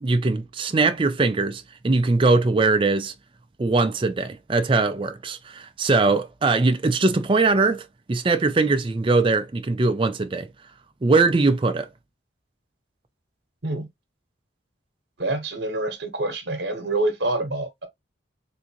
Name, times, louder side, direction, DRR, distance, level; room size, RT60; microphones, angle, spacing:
voice 1, 0.0-3.1 3.6-7.8 8.1-10.5 11.0-11.9, right 3 dB, 25° right, 0.4 m, -21 dB
voice 2, 15.2-17.9, right 2 dB, 55° right, 1.0 m, -26 dB
3.6 x 2.8 x 2.8 m
head